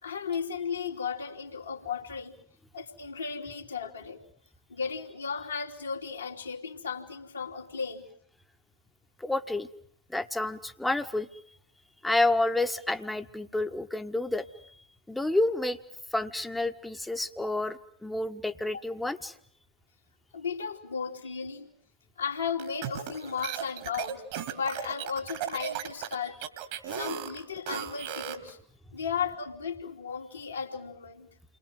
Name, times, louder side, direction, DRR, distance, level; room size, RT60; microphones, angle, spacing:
voice 1, 0.0-2.3 2.7-4.2 4.7-8.1 18.7-18.8 20.3-21.7 22.2-24.2 24.5-26.4 26.9-28.6 28.9-31.3, left 6 dB, 75° left, -1 dB, 3.1 m, -35 dB
voice 2, 9.2-9.7 10.1-11.4 12.0-14.8 15.1-15.8 16.1-19.4, left 2 dB, 5° left, 9 dB, 1.4 m, -29 dB
sound 1, 22.6-28.5, right 9 dB, 50° right, 2.4 m, -36 dB
29.5 x 22.5 x 7.9 m, 0.63 s
figure-of-eight pair, 90°, 0 cm